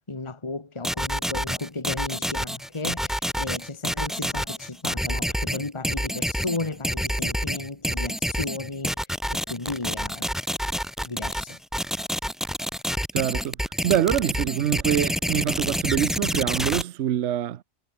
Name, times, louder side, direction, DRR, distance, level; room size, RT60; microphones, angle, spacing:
voice 1, 0.1-10.4 11.0-11.6, left 3 dB, 20° left, 1.8 m, -34 dB
sound 1, 0.8-16.8, equal, ahead, 1.6 m, -28 dB
voice 2, 13.1-13.6 13.8-17.6, right 11 dB, 65° right, 0.9 m, -25 dB
omnidirectional pair, 1.4 m